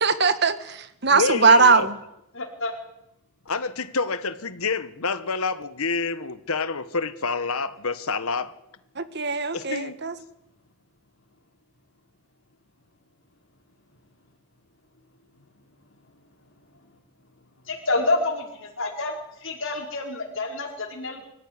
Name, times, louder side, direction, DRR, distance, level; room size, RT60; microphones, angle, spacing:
voice 1, 0.0-1.9 9.0-10.1, right 4 dB, 50° right, 11 dB, 1.5 m, -20 dB
voice 2, 1.1-1.9 3.5-8.5 9.5-10.0, left 4 dB, 75° left, 12 dB, 1.3 m, -27 dB
voice 3, 2.3-2.7 17.7-19.1 19.4-21.3, left 2 dB, 55° left, 1 dB, 4.9 m, -28 dB
25.0 x 14.5 x 9.8 m, 0.83 s
head